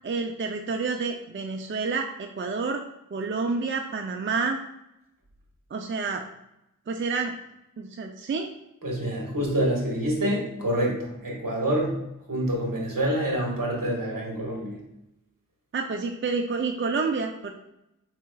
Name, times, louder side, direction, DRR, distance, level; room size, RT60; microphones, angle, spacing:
voice 1, 0.0-2.8 3.1-4.6 5.7-6.2 6.9-7.3 7.8-8.5 15.7-17.5, right 4 dB, 35° right, 4 dB, 0.4 m, -29 dB
voice 2, 8.8-12.0 12.3-14.8, right 1 dB, 70° right, -2 dB, 1.5 m, -27 dB
4.6 x 4.3 x 2.2 m, 0.86 s
wide cardioid pair, 75°, 34 cm